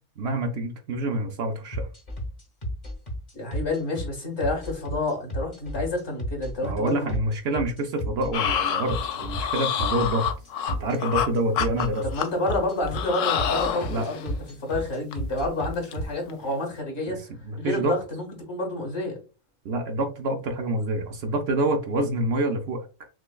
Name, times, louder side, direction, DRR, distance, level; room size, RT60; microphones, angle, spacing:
voice 1, 0.2-1.9 6.6-10.3 10.7-12.0 13.9-14.1 17.1-17.2 17.4-17.9 19.6-22.9, right 1 dB, 65° right, 0.8 m, -27 dB
sound 1, 1.7-16.0, equal, 40° left, 1.1 m, -32 dB
voice 2, 3.3-7.1 12.0-17.3 17.6-19.2, left 2 dB, 60° left, 1.8 m, -29 dB
sound 2, 8.3-11.3 11.5-12.5 12.9-14.3 14.7-14.8 15.1-15.3 15.6-15.9 16.3-16.5, left 8 dB, 90° left, 1.0 m, -28 dB
6.0 x 2.2 x 2.2 m
omnidirectional pair, 1.3 m